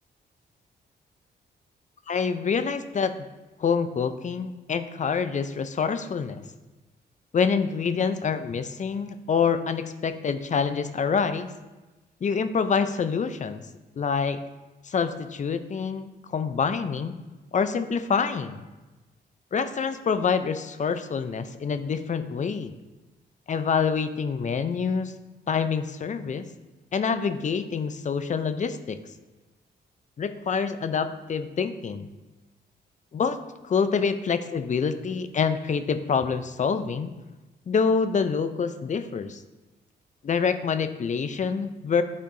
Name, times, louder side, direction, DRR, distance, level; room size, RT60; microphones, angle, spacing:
voice 1, 2.1-3.1 3.6-6.4 7.3-11.5 12.2-13.6 14.0-14.4 14.8-17.2 17.5-18.6 19.5-22.7 23.5-25.1 25.5-26.5 26.9-29.0 30.2-32.1 33.1-33.4 33.6-37.1 37.7-39.4 40.2-42.0, left 6 dB, 40° left, 11 dB, 0.5 m, -26 dB
10.0 x 4.3 x 2.6 m, 1.1 s
cardioid pair, 80°, 18 cm